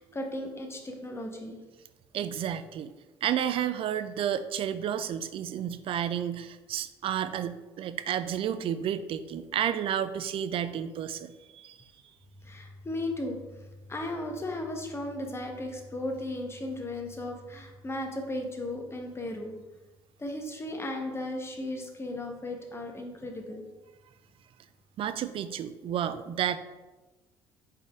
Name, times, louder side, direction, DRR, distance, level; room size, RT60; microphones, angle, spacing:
voice 1, 0.0-1.6 12.4-19.5 20.2-23.7, left 1 dB, 20° left, 2 dB, 1.0 m, -36 dB
voice 2, 2.1-2.9 3.2-11.8 25.0-26.6, right 9 dB, 45° right, 12 dB, 0.4 m, -31 dB
4.2 x 3.5 x 3.4 m, 1.1 s
hypercardioid pair, 60°, 13 cm